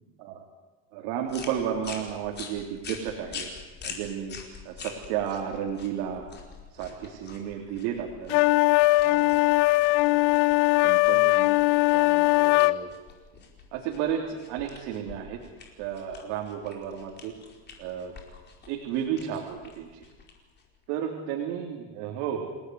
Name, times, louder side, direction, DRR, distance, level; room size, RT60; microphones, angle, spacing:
voice 1, 0.9-3.5 3.8-4.4 4.7-6.3 6.7-8.4 9.0-9.4 10.1-10.3 10.8-11.5 11.9-12.9 13.7-15.4 15.8-17.3 17.8-18.1 18.7-20.1 20.9-22.5, right 9 dB, 70° right, 1 dB, 3.8 m, -33 dB
sound 1, 1.3-20.8, left 5 dB, 30° left, 4.7 m, -45 dB
sound 2, 8.3-12.8, left 21 dB, 65° left, 0.8 m, -20 dB
28.0 x 17.5 x 9.7 m, 1.2 s
cardioid pair, 155°, 36 cm